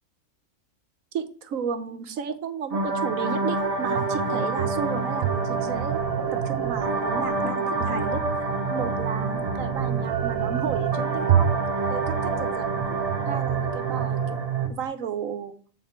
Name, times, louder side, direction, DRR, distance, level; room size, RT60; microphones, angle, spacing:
voice 1, 1.1-6.0 6.3-8.2 8.7-11.5 11.9-12.7 13.3-14.4 14.7-15.5, right 7 dB, 85° right, 10 dB, 1.3 m, -33 dB
sound 1, 2.7-14.7, right 4 dB, 30° right, 1.1 m, -27 dB
sound 2, 3.9-14.8, right 9 dB, 60° right, 1.0 m, -31 dB
8.6 x 4.1 x 4.4 m, 0.42 s
omnidirectional pair, 1.4 m